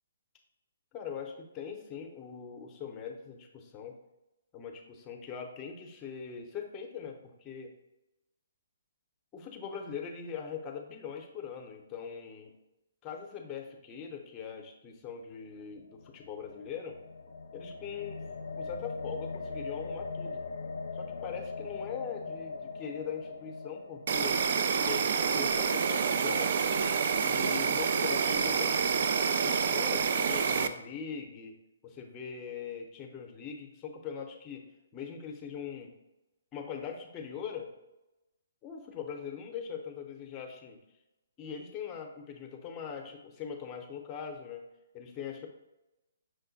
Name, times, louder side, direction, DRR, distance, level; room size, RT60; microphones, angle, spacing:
voice 1, 0.9-4.0 4.5-7.7 9.3-12.5 13.0-17.0 17.5-18.2 18.6-20.4 20.9-24.4 24.9-26.5 27.2-28.8 29.4-31.6 31.8-34.7 34.9-35.9 36.5-37.7 38.6-40.8 41.4-44.6 44.9-45.5, left 7 dB, 20° left, 3 dB, 0.7 m, -41 dB
sound 1, 15.8-26.0, left 4 dB, 75° left, 0.4 m, -41 dB
Insect, 24.1-30.7, right 6 dB, 55° right, 0.3 m, -28 dB
6.2 x 2.1 x 4.0 m, 0.95 s
hypercardioid pair, 150°, 0 cm